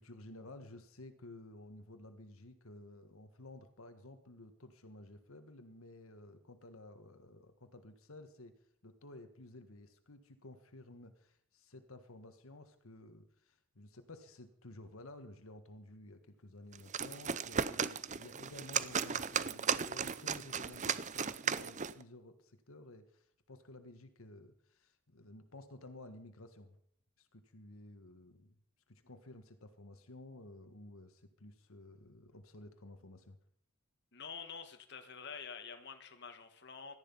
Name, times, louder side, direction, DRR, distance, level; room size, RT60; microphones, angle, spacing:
voice 1, 0.0-8.5 8.8-26.8 27.2-28.5 28.9-33.4, left 2 dB, 75° left, 8 dB, 1.5 m, -54 dB
sound 1, 16.7-22.0, right 7 dB, 35° right, 0.6 m, -36 dB
voice 2, 34.1-37.0, left 6 dB, 50° left, 7 dB, 1.7 m, -47 dB
17.5 x 13.0 x 5.6 m, 0.63 s
head